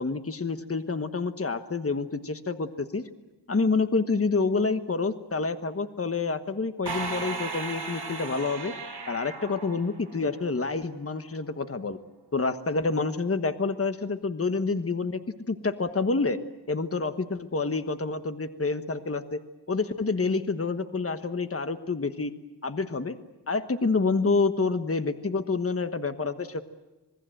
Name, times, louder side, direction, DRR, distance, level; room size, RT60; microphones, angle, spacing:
voice 1, 0.0-3.0 3.5-8.7 9.1-12.0 12.3-15.2 15.5-16.4 16.7-19.4 19.7-22.3 22.6-23.2 23.5-26.6, left 4 dB, 30° left, 9 dB, 1.3 m, -28 dB
sound 1, 6.9-10.5, right 4 dB, 65° right, 2.9 m, -36 dB
27.0 x 20.5 x 7.9 m, 1.1 s
wide cardioid pair, 85°, 42 cm